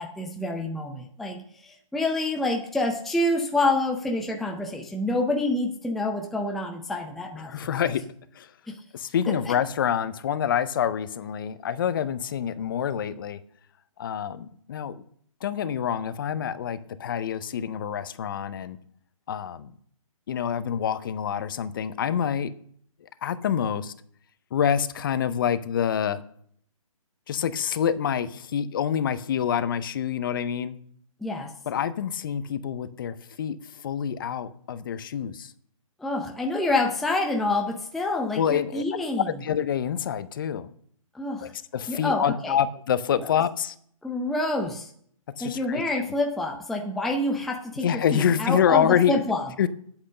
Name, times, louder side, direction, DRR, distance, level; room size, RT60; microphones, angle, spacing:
voice 1, 0.0-7.5 8.7-8.8 9.3-9.6 31.2-31.5 36.0-39.3 41.1-41.5 41.9-42.6 43.2-43.3 44.0-44.9 45.4-49.4, left 2 dB, ahead, 2 dB, 0.5 m, -27 dB
voice 2, 7.4-8.0 8.4-8.5 8.9-13.4 14.0-15.0 15.4-18.8 19.3-19.7 20.3-22.5 23.2-23.9 24.5-26.2 27.3-30.8 31.7-35.5 38.4-38.8 39.2-40.7 41.4-43.7 45.4-45.8 47.8-49.2 49.6-49.7, left 8 dB, 40° left, 15 dB, 0.7 m, -26 dB
8.8 x 8.1 x 6.6 m, 0.63 s
hypercardioid pair, 145°, 18 cm